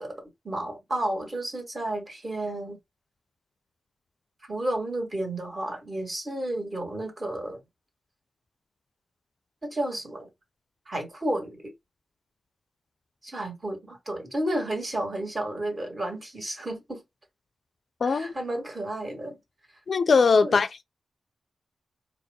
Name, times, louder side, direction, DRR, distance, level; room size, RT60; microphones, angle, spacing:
voice 1, 0.0-2.8 4.5-7.6 9.6-10.3 10.9-11.7 13.2-17.0 18.0-19.4 20.4-20.6, right 1 dB, 25° right, 1.6 m, -32 dB
voice 2, 18.0-18.3 19.9-20.8, left 4 dB, 55° left, 0.4 m, -21 dB
4.4 x 2.1 x 3.5 m
wide cardioid pair, 105°, 0 cm